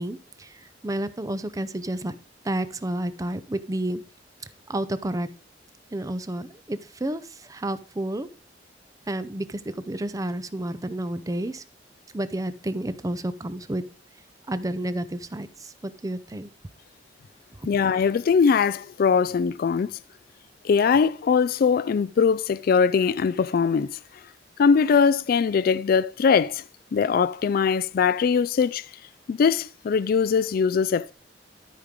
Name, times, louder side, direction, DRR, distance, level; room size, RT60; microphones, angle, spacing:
voice 1, 0.0-2.2 2.4-4.0 4.7-5.3 5.9-8.3 9.1-11.6 12.1-13.8 14.5-16.5, right 1 dB, 20° right, 0.5 m, -30 dB
voice 2, 17.6-20.0 20.6-24.0 24.6-26.6 26.9-28.9 29.3-31.1, left 6 dB, 55° left, 0.3 m, -21 dB
13.0 x 5.1 x 3.7 m
head